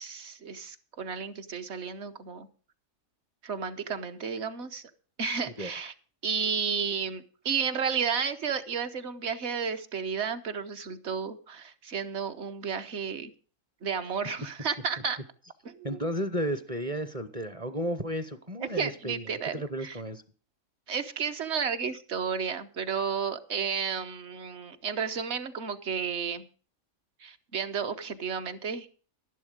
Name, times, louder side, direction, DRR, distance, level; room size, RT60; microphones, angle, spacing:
voice 1, 0.0-2.5 3.4-4.8 5.2-5.9 6.2-13.3 13.8-15.2 15.6-16.0 18.8-20.0 20.9-26.4 27.2-28.9, right 6 dB, 55° right, 8 dB, 1.2 m, -32 dB
voice 2, 15.8-19.3 19.5-20.2, equal, 30° right, 11 dB, 0.8 m, -33 dB
11.5 x 11.0 x 5.0 m, 0.40 s
omnidirectional pair, 1.4 m